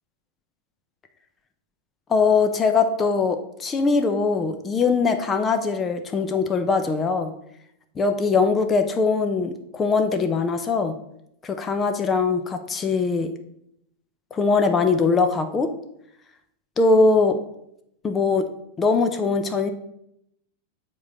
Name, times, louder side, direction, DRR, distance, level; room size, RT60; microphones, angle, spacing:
voice 1, 2.1-7.3 8.0-10.9 11.4-13.3 14.3-15.7 16.8-17.4 18.0-18.4 18.8-19.7, left 4 dB, 20° left, 7 dB, 0.6 m, -21 dB
7.7 x 3.8 x 5.5 m, 0.77 s
figure-of-eight pair, 90°, 0 cm